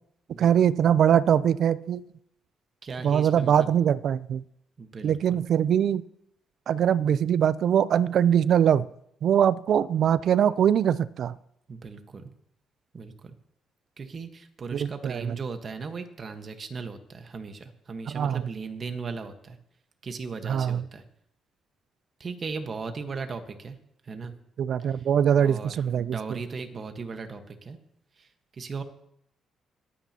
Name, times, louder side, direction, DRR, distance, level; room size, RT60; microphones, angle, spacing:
voice 1, 0.4-2.0 3.0-4.4 5.0-6.0 6.7-8.9 9.2-11.3 14.7-15.4 18.1-18.4 20.5-20.8 24.6-26.2, right 9 dB, 65° right, 18 dB, 0.4 m, -22 dB
voice 2, 2.8-3.7 4.8-5.4 11.7-12.2 12.9-13.4 14.0-19.6 20.0-21.0 22.2-23.8 24.0-24.3 24.9-25.1 25.4-27.8 28.2-28.8, right 4 dB, 45° right, 7 dB, 1.4 m, -37 dB
21.5 x 9.2 x 2.9 m, 0.75 s
cardioid pair, 90°, 0 cm